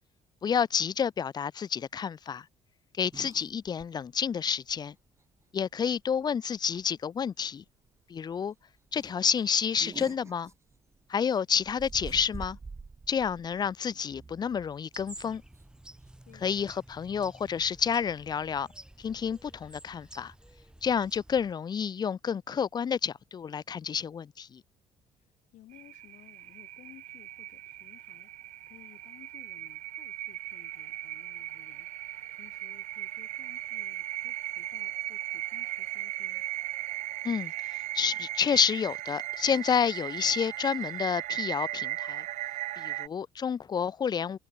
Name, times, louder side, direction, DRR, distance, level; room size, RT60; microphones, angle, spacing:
voice 1, 0.4-2.5 3.0-4.9 5.5-7.6 8.1-8.5 8.9-10.5 11.1-12.6 13.1-15.4 16.4-18.7 19.0-20.3 20.8-24.6 37.2-37.5 37.9-42.2 42.8-44.4, left 7 dB, 35° left, 0.6 m, -29 dB
sound 1, 3.1-3.9 4.3-4.4 4.7-4.8 6.0-6.3 6.6-6.8 7.3-7.4 7.7-7.8 8.2-8.4 8.9-11.1 11.6-16.9, right 4 dB, 20° right, 1.8 m, -47 dB
sound 2, 14.9-21.5, right 1 dB, 5° right, 7.6 m, -51 dB
voice 2, 16.3-16.6 25.5-36.4, left 15 dB, 80° left, 7.0 m, -57 dB
sound 3, 25.7-43.1, right 15 dB, 70° right, 0.6 m, -37 dB
cardioid pair, 105°, 13 cm